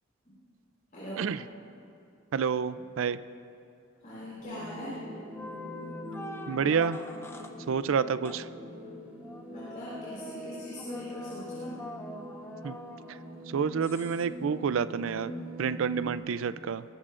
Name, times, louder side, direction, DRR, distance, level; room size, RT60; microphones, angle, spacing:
voice 1, 0.9-1.3 4.0-4.9 9.5-11.8, equal, 40° left, -9 dB, 4.1 m, -41 dB
voice 2, 2.3-3.2 6.5-7.0 7.7-8.5 12.6-12.8 13.5-16.8, right 6 dB, 65° right, 14 dB, 0.4 m, -29 dB
sound 1, 4.4-16.1, equal, 10° right, 2.6 m, -43 dB
sound 2, 4.8-5.1 5.3-7.6 8.2-8.5 9.2-13.4 13.8-14.2, left 2 dB, 10° left, 0.7 m, -44 dB
22.0 x 17.5 x 2.5 m, 2.6 s
head